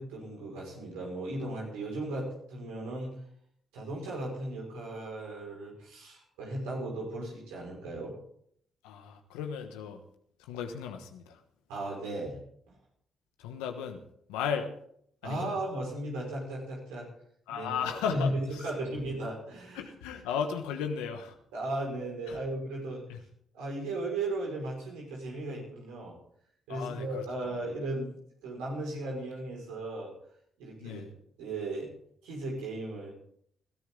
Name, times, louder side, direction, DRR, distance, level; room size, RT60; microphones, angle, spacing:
voice 1, 0.0-3.2 3.7-8.1 11.7-12.4 15.2-17.1 17.5-19.9 21.5-23.0 23.5-26.2 26.7-28.1 28.4-30.1 30.6-31.0 31.4-31.9 32.2-33.1, right 2 dB, 90° right, -2 dB, 5.4 m, -36 dB
voice 2, 8.8-10.0 10.5-11.4 13.4-14.0 14.3-14.7 15.2-15.5 17.5-18.4 19.7-21.3 23.1-23.2 26.7-27.2 30.8-31.1, left 7 dB, 90° left, 5 dB, 1.2 m, -35 dB
21.0 x 13.0 x 3.9 m, 0.67 s
supercardioid pair, 55°, 0 cm